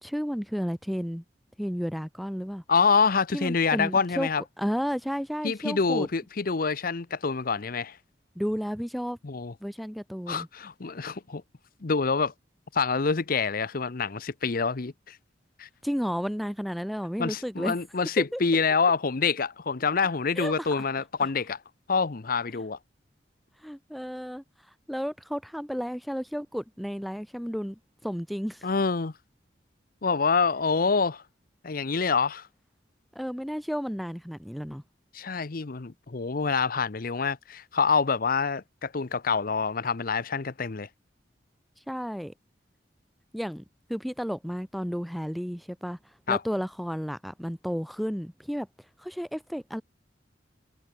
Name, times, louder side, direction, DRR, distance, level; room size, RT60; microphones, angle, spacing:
voice 1, 0.0-1.2 1.6-2.6 3.3-4.3 4.6-6.1 8.4-9.2 9.6-10.5 15.8-17.7 18.2-18.4 20.4-20.8 23.6-24.4 24.9-28.7 33.1-34.8 41.9-42.3 43.3-43.6 43.9-46.0 46.3-48.7 49.0-49.8, equal, ahead, 0.6 m, -32 dB
voice 2, 2.7-4.4 5.4-8.0 9.2-9.5 10.3-11.4 11.8-12.3 12.7-15.2 15.6-15.7 17.2-21.6 21.9-22.8 28.6-29.1 30.0-31.2 31.6-32.5 35.1-40.9 46.3-46.4, left 5 dB, 50° left, 0.8 m, -26 dB
head